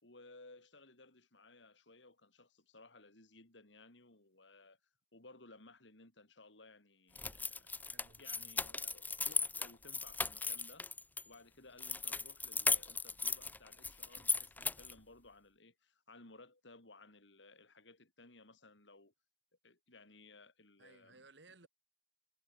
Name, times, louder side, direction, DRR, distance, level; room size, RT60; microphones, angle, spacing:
voice 1, 0.0-4.8 5.1-7.7 8.2-10.9 11.3-19.1 19.6-21.3, left 2 dB, 90° left, 4.3 m, -59 dB
sound 1, 7.2-11.2 11.8-15.0, left 4 dB, 10° left, 0.5 m, -37 dB
voice 2, 7.9-8.5 20.8-21.7, right 3 dB, 75° right, 3.0 m, -61 dB
head